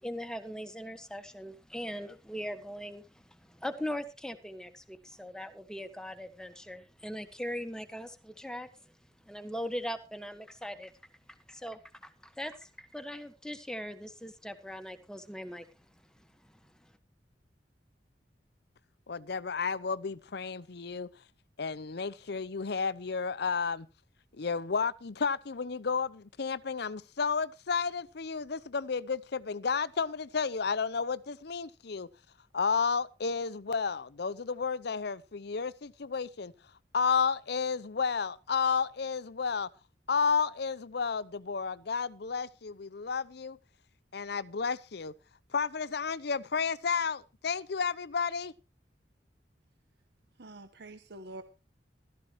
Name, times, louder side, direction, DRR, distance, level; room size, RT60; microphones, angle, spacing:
voice 1, 0.0-8.9 9.2-10.9 11.5-15.7 16.2-16.5 16.8-16.9, equal, 5° left, 1.5 m, -40 dB
voice 2, 19.1-21.1 21.6-23.9 24.3-32.1 32.5-36.5 36.9-39.7 40.1-43.6 44.1-45.1 45.5-48.5, left 5 dB, 65° left, 0.7 m, -32 dB
voice 3, 50.4-51.4, right 2 dB, 65° right, 1.1 m, -46 dB
15.0 x 13.5 x 3.1 m
head